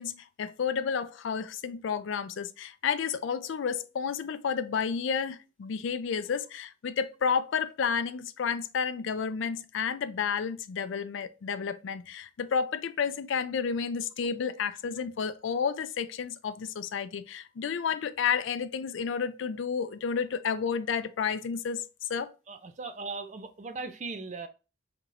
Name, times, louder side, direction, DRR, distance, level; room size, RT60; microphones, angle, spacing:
voice 1, 0.0-21.8 22.1-22.3, left 6 dB, 75° left, 0.4 m, -31 dB
voice 2, 22.5-24.5, right 3 dB, 35° right, 0.4 m, -38 dB
4.6 x 2.9 x 2.5 m
head